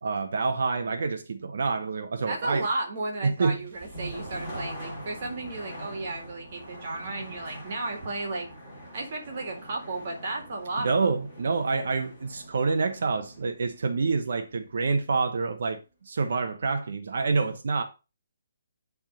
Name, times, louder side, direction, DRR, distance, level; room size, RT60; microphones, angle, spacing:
voice 1, 0.0-2.6 3.2-3.6 10.8-15.8 16.0-17.8, right 4 dB, 50° right, 0.9 m, -27 dB
voice 2, 2.3-8.5 8.9-11.2, right 2 dB, 30° right, 1.9 m, -34 dB
sound 1, 3.5-15.4, right 1 dB, ahead, 3.1 m, -43 dB
10.5 x 3.6 x 5.1 m
hypercardioid pair, 180°, 0 cm